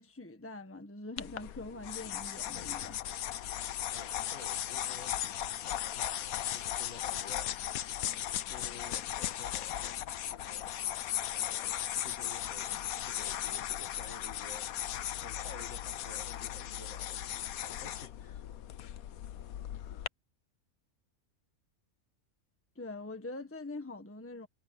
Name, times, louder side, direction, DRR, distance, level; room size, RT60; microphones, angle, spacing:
voice 1, 0.0-3.0 22.7-24.5, left 2 dB, 10° left, 1.5 m, -44 dB
sound 1, 1.2-20.1, left 11 dB, 80° left, 1.2 m, -37 dB
voice 2, 3.9-5.2 5.6-7.6 8.5-10.0 10.3-10.8 12.0-14.8 15.2-18.4, left 3 dB, 55° left, 2.6 m, -52 dB
omnidirectional pair, 1.5 m